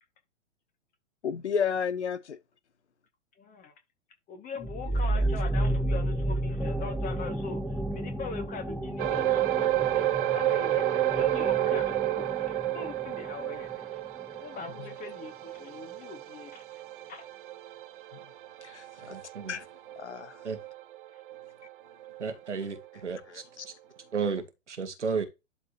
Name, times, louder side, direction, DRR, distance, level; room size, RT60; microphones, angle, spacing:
voice 1, 1.2-2.4 5.1-5.3 18.6-19.2 19.5-19.6 20.0-20.4 23.3-23.7, left 6 dB, 65° left, 0.8 m, -32 dB
voice 2, 3.4-3.7 4.3-10.0 10.3-10.8 11.2-13.8 14.3-16.8 17.1-17.3, left 5 dB, 20° left, 2.0 m, -41 dB
sound 1, 4.6-14.0, right 1 dB, ahead, 0.7 m, -32 dB
sound 2, 9.0-21.7 22.0-22.2 22.8-22.9, right 14 dB, 45° right, 0.6 m, -31 dB
voice 3, 19.0-19.5 20.4-20.6 22.2-23.4 24.1-25.3, right 5 dB, 70° right, 1.8 m, -33 dB
11.5 x 4.2 x 3.0 m
figure-of-eight pair, 110°, 36 cm